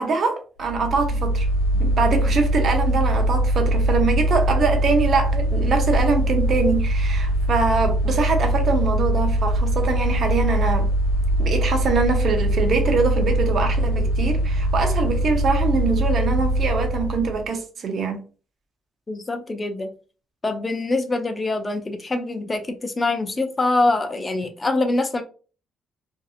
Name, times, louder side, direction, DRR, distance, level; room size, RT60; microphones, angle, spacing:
voice 1, 0.0-1.5 1.7-10.9 11.4-18.2, right 4 dB, 55° right, 0.7 m, -23 dB
Mechanical fan, 0.6-17.5, equal, 90° left, 0.7 m, -22 dB
voice 2, 19.1-19.9 20.4-25.2, left 2 dB, 25° left, 0.5 m, -24 dB
2.7 x 2.5 x 2.4 m
cardioid pair, 105°, 0 cm